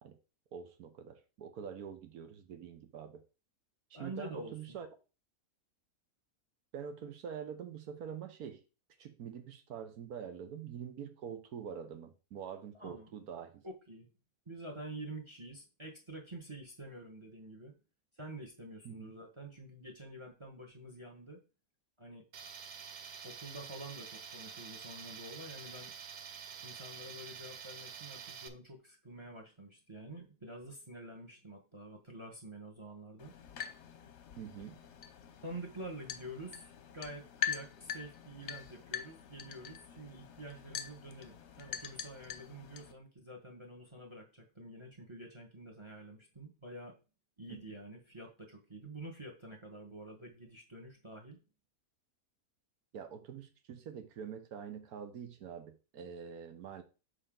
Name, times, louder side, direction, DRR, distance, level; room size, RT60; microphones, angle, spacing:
voice 1, 0.5-3.2 3.9-4.9 6.7-8.6 9.0-13.6 18.8-19.1 34.4-34.8 47.5-47.6 52.9-56.8, right 8 dB, 80° right, 8 dB, 1.4 m, -45 dB
voice 2, 3.9-4.5 12.8-13.1 13.6-14.1 14.5-17.7 18.1-21.4 22.0-22.2 23.2-25.9 26.6-33.3 35.4-47.0 47.4-51.4, right 1 dB, 20° right, 3 dB, 1.1 m, -48 dB
Tools, 22.3-28.5, right 6 dB, 60° right, 0.4 m, -48 dB
sound 1, 33.2-42.9, left 8 dB, 60° left, 0.9 m, -44 dB
6.7 x 4.5 x 3.8 m, 0.32 s
omnidirectional pair, 1.6 m